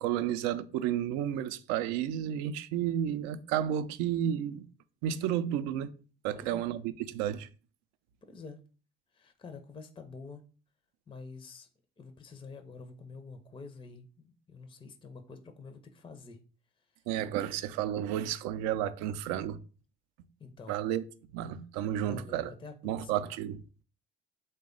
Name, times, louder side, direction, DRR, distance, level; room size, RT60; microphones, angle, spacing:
voice 1, 0.0-4.7 5.0-5.9 6.2-7.5 17.1-19.6 20.7-21.0 21.3-22.5 22.8-23.6, right 10 dB, 65° right, 0.4 m, -32 dB
voice 2, 6.3-6.7 8.2-8.6 9.1-10.4 11.1-11.7 12.0-16.4 20.4-20.8 22.0-23.3, left 4 dB, 15° left, 0.5 m, -47 dB
3.2 x 2.2 x 3.7 m
hypercardioid pair, 60°, 30 cm